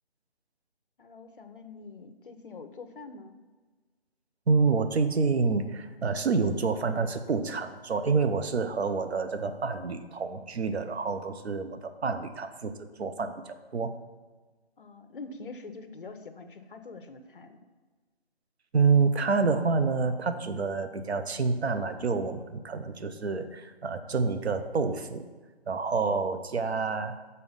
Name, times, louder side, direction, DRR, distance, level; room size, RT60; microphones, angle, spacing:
voice 1, 1.0-3.3 14.8-17.6, left 3 dB, 55° left, 8 dB, 0.7 m, -45 dB
voice 2, 4.5-12.7 13.0-13.9 18.7-25.2 25.7-27.2, right 4 dB, 75° right, 9 dB, 0.8 m, -28 dB
6.5 x 4.1 x 5.5 m, 1.3 s
figure-of-eight pair, 165°, 32 cm